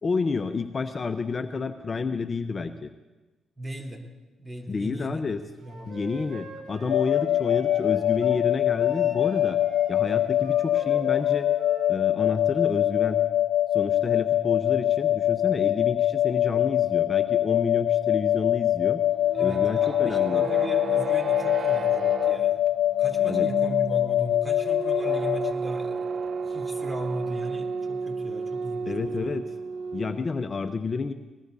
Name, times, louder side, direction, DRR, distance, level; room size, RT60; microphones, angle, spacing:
voice 1, 0.0-2.9 4.7-5.4 5.9-9.6 9.9-11.5 11.9-13.2 13.7-19.0 19.4-20.5 23.3-23.5 28.9-29.5 29.9-31.1, left 4 dB, 45° left, 9 dB, 0.8 m, -29 dB
voice 2, 3.6-4.0 4.4-5.2 5.6-5.9 19.3-22.6 23.0-26.1 26.4-29.3, right 1 dB, 20° right, 1 dB, 3.8 m, -38 dB
Wind instrument woodwind instrument, 5.6-8.4 8.8-11.9, right 4 dB, 70° right, 3.2 m, -44 dB
sound 1, 6.9-25.5, left 12 dB, 80° left, 0.5 m, -24 dB
sound 2, 19.1-30.4, right 5 dB, 55° right, 0.7 m, -33 dB
20.5 x 20.0 x 2.8 m, 1.2 s
supercardioid pair, 50°, 0 cm